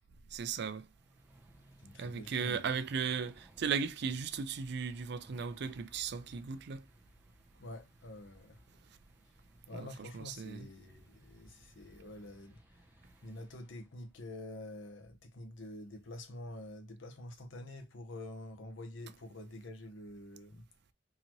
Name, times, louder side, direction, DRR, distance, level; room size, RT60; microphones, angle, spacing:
voice 1, 0.3-0.9 2.0-6.9 9.7-10.7, right 6 dB, 60° right, 0.4 m, -36 dB
sound 1, 0.8-14.2, right 1 dB, 10° right, 0.7 m, -62 dB
voice 2, 1.8-2.6 7.6-8.6 9.7-12.6 13.2-20.6, left 1 dB, 80° left, 0.9 m, -47 dB
3.9 x 2.8 x 3.0 m
head